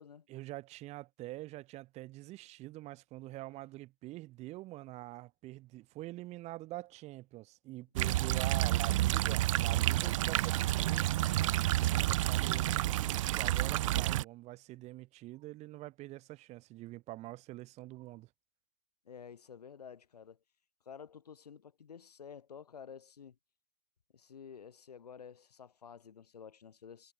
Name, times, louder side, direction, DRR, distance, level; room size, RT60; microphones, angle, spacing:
voice 1, 0.3-11.1 11.8-18.3, right 18 dB, 30° right, 1.7 m, -45 dB
sound 1, 8.0-14.2, right 15 dB, 50° right, 0.5 m, -30 dB
voice 2, 19.0-20.4 20.8-23.4 24.1-27.1, left 7 dB, 70° left, 5.0 m, -51 dB
figure-of-eight pair, 100°, 21 cm